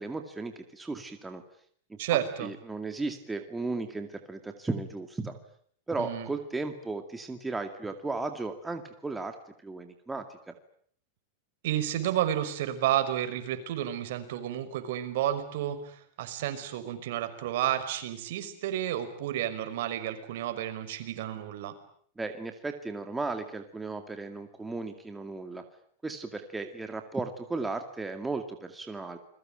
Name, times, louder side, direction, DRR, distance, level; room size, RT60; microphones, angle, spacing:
voice 1, 0.0-1.4 1.9-2.0 2.4-5.4 5.9-9.4 9.6-10.5 22.2-25.6 26.0-29.2, right 3 dB, 10° right, 6 dB, 2.2 m, -35 dB
voice 2, 2.0-2.5 6.0-6.3 11.6-21.7, right 12 dB, 65° right, 9 dB, 5.3 m, -31 dB
29.5 x 21.5 x 9.1 m, 0.62 s
supercardioid pair, 145°, 0 cm